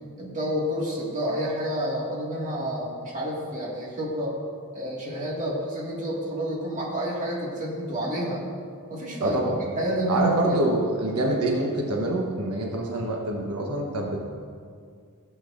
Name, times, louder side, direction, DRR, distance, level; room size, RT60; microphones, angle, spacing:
voice 1, 0.2-4.4 4.7-8.4 8.9-9.4 9.7-10.6, equal, 35° right, -4 dB, 2.0 m, -29 dB
voice 2, 9.2-9.6 10.1-14.2, right 1 dB, 85° right, 0 dB, 1.1 m, -26 dB
15.5 x 7.7 x 2.6 m, 2.2 s
head